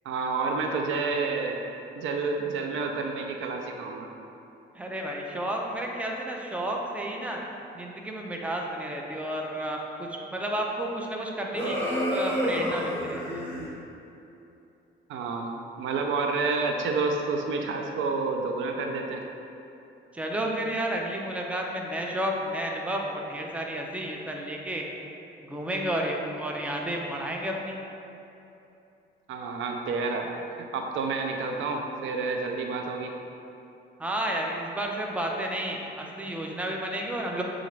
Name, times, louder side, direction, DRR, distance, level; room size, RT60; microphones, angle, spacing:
voice 1, 0.1-1.6 2.0-4.1 15.1-15.5 15.8-19.2 29.3-30.3 30.6-33.1, right 4 dB, 80° right, 2 dB, 0.5 m, -29 dB
voice 2, 4.7-7.4 7.7-9.8 10.1-11.8 12.1-13.5 20.1-24.8 25.5-27.8 34.0-37.4, right 1 dB, 5° right, 0 dB, 0.5 m, -31 dB
sound 1, 11.5-13.7, equal, 10° left, 1.3 m, -29 dB
6.8 x 2.5 x 3.1 m, 2.8 s
cardioid pair, 90°, 20 cm